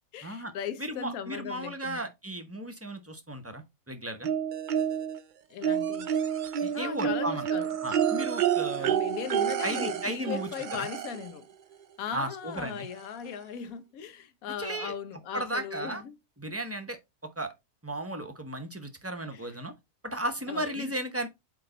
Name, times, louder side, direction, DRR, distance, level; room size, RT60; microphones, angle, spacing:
voice 1, 0.1-2.1 5.5-6.1 6.7-7.7 8.8-11.5 12.0-16.2 16.5-16.6 19.3-19.5 20.5-20.9, left 8 dB, 75° left, 1.2 m, -38 dB
voice 2, 0.8-4.3 6.6-7.5 7.8-8.9 9.6-10.9 12.1-12.9 14.6-14.9 15.3-16.0 16.4-17.5 17.8-19.7 20.0-21.3, right 1 dB, 15° right, 0.6 m, -35 dB
sound 1, 4.2-5.2 5.6-11.3 12.5-12.6 13.0-13.1, right 9 dB, 85° right, 0.4 m, -29 dB
8.5 x 3.1 x 3.9 m
omnidirectional pair, 1.5 m